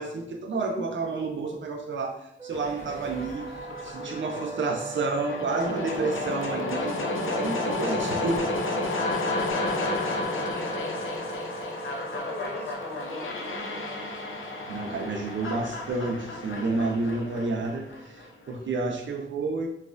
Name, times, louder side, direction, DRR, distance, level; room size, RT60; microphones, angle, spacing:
voice 1, 0.0-8.5 14.7-19.7, right 3 dB, 70° right, 2 dB, 0.5 m, -30 dB
sound 1, 2.4-17.7, right 2 dB, 15° right, 0.6 m, -39 dB
sound 2, 2.5-18.5, left 2 dB, 90° left, 0.5 m, -32 dB
voice 2, 9.6-10.7 12.1-14.3, left 1 dB, 10° left, -4 dB, 1.0 m, -43 dB
4.1 x 2.4 x 2.5 m, 0.75 s
wide cardioid pair, 105°, 20 cm